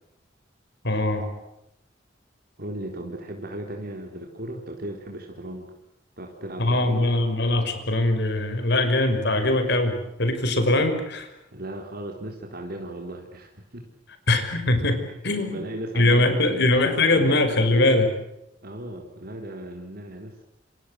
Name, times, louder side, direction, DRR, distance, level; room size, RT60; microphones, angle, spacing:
voice 1, 0.8-1.2 6.6-11.3 14.3-15.6 16.0-18.1, left 2 dB, 65° left, 8 dB, 5.7 m, -22 dB
voice 2, 2.6-5.7 6.2-7.0 11.5-13.8 15.5-17.5 18.6-20.4, right 1 dB, 55° right, 2 dB, 3.9 m, -36 dB
29.0 x 28.0 x 6.5 m, 0.86 s
head